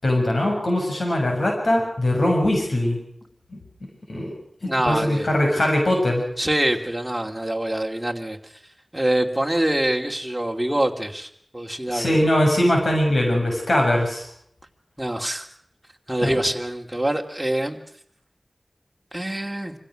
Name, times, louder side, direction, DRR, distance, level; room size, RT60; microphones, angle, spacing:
voice 1, 0.0-3.0 3.5-3.6 4.1-4.3 4.6-6.2 11.9-14.3 16.2-16.4, left 1 dB, 80° left, 1 dB, 6.8 m, -21 dB
voice 2, 4.6-5.3 6.4-8.4 8.9-12.1 15.0-15.5 16.1-17.8 19.1-19.7, right 1 dB, 10° right, 1 dB, 2.7 m, -25 dB
26.0 x 16.5 x 6.4 m, 0.64 s
wide cardioid pair, 50°, 0 cm